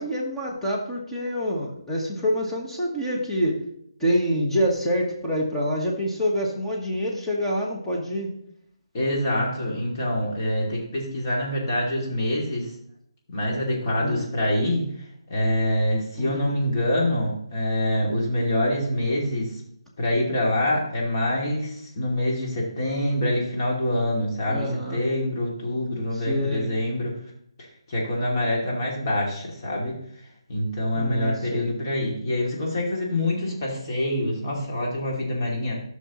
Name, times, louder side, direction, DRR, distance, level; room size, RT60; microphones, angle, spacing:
voice 1, 0.0-3.5 4.0-8.3 14.0-14.3 16.2-16.6 24.5-25.0 26.1-26.8 31.0-31.7, equal, 5° left, -4 dB, 1.4 m, -26 dB
voice 2, 8.9-12.7 13.3-14.8 15.3-19.6 20.0-27.1 27.9-29.9 30.5-35.7, left 1 dB, 35° left, -3 dB, 2.6 m, -25 dB
12.0 x 6.2 x 3.1 m, 0.72 s
hypercardioid pair, 165°, 3 cm